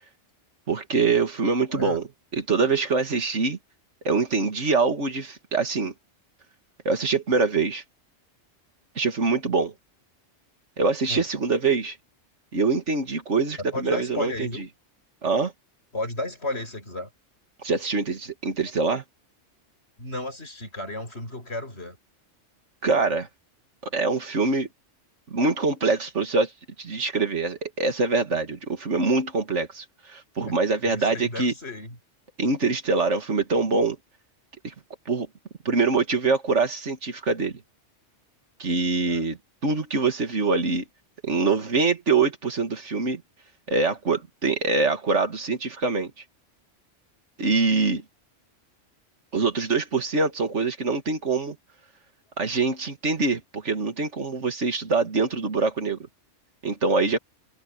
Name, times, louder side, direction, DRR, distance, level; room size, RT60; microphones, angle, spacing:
voice 1, 0.7-2.1 2.3-3.6 4.0-5.9 6.9-7.8 9.0-9.7 10.8-12.0 12.5-14.6 15.2-15.5 17.6-19.0 22.8-23.3 23.9-24.7 25.3-26.5 26.8-31.5 32.4-34.0 34.6-34.7 35.1-35.3 35.7-37.6 38.6-40.8 41.2-43.2 43.7-46.1 47.4-48.0 49.3-51.6 52.4-56.0 56.6-57.2, right 4 dB, 70° right, 2.4 m, -24 dB
voice 2, 1.7-2.0 11.1-11.3 13.7-14.6 15.9-17.1 20.0-22.0 30.5-30.6 30.9-32.0 39.1-39.3, left 2 dB, 60° left, 8.1 m, -33 dB
omnidirectional pair, 1.2 m